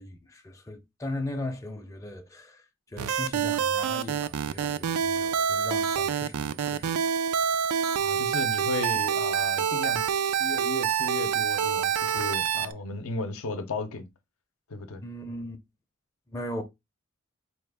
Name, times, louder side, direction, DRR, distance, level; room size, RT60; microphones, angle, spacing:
voice 1, 0.0-2.6 2.9-7.0 15.0-15.6 16.3-16.6, left 1 dB, 15° left, 0.5 m, -38 dB
sound 1, 3.0-12.7, right 7 dB, 80° right, 0.4 m, -27 dB
voice 2, 8.0-14.1 14.7-15.0, left 3 dB, 70° left, 0.6 m, -35 dB
4.2 x 2.3 x 3.3 m
head